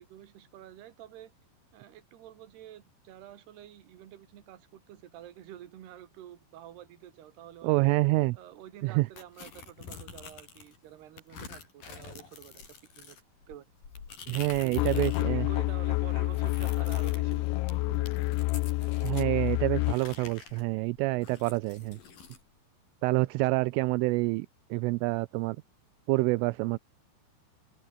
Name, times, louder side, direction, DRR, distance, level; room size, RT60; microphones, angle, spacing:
voice 1, 0.0-1.3 1.7-7.9 8.3-12.7 12.9-13.2 13.5-13.7 14.6-18.4 18.8-19.0, right 12 dB, 60° right, 3.8 m, -48 dB
voice 2, 7.6-8.4 8.8-9.1 14.3-15.5 19.0-22.0 23.0-25.6 26.1-26.8, right 23 dB, 85° right, 3.2 m, -27 dB
sound 1, 9.2-10.8 11.2-15.3 15.6-19.3 19.8-22.4, left 5 dB, 45° left, 6.1 m, -47 dB
sound 2, 14.8-20.0, left 24 dB, 85° left, 2.6 m, -28 dB
open air
omnidirectional pair, 5.8 m